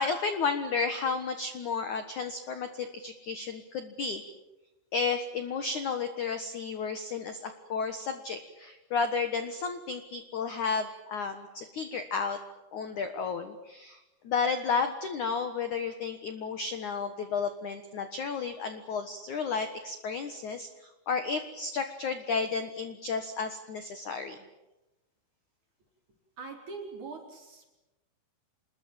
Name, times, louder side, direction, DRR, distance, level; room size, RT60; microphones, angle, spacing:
voice 1, 0.0-4.2 4.9-12.4 12.7-24.4, left 5 dB, 80° left, 8 dB, 1.7 m, -32 dB
voice 2, 26.4-27.7, right 4 dB, 40° right, 2 dB, 5.3 m, -42 dB
27.5 x 21.5 x 8.9 m, 1.0 s
omnidirectional pair, 5.9 m